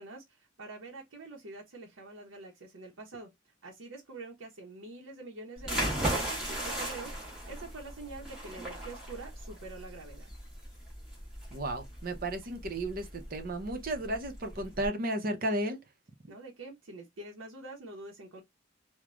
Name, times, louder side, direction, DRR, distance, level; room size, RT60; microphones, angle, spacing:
voice 1, 0.0-10.3 16.3-18.4, right 2 dB, 85° right, 0.7 m, -46 dB
sound 1, 5.6-14.9, right 1 dB, 5° right, 1.2 m, -37 dB
voice 2, 11.5-15.8, right 1 dB, 45° right, 0.7 m, -33 dB
3.1 x 2.1 x 2.4 m
head